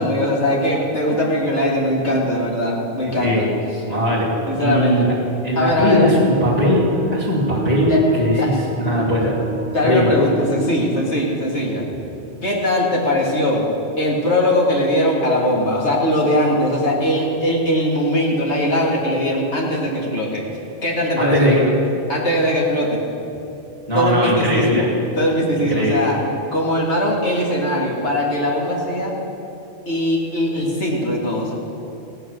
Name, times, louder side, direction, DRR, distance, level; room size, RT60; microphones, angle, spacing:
voice 1, 0.0-3.8 4.5-5.1 5.6-6.0 7.9-8.0 8.4-8.5 9.7-11.8 12.4-13.6 14.0-20.4 20.8-21.7 22.1-23.0 23.9-24.9 25.1-26.2 26.5-29.2 29.9-31.5, left 1 dB, 75° left, -2 dB, 2.4 m, -20 dB
voice 2, 3.9-4.3 4.6-5.1 5.4-6.9 7.1-7.9 8.2-8.5 8.8-9.3 9.8-10.1 21.2-21.6 23.9-24.8 25.6-26.0, equal, 35° left, -8 dB, 2.2 m, -18 dB
Wind instrument woodwind instrument, 6.2-11.1, right 4 dB, 55° right, 1.5 m, -31 dB
16.5 x 8.4 x 6.3 m, 2.8 s
omnidirectional pair, 1.2 m